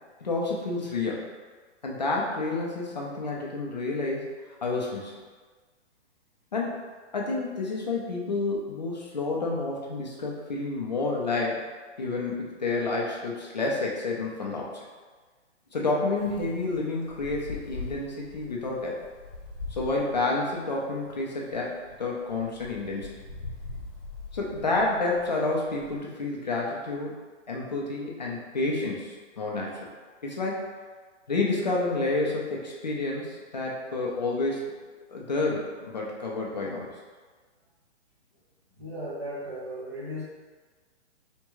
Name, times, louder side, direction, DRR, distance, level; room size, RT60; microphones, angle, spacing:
voice 1, 0.2-1.3 1.8-4.2 4.6-5.2 6.5-6.8 7.1-11.6 12.0-14.8 15.7-19.0 19.7-23.1 24.3-27.1 27.5-29.9 30.2-30.7 31.3-34.8 35.1-36.9, left 3 dB, 40° left, -3 dB, 0.4 m, -29 dB
Wind, 16.2-26.0, left 3 dB, 85° left, 0.9 m, -43 dB
voice 2, 38.8-40.2, equal, 25° right, -8 dB, 0.6 m, -36 dB
3.5 x 2.2 x 3.0 m, 1.4 s
hypercardioid pair, 175°, 36 cm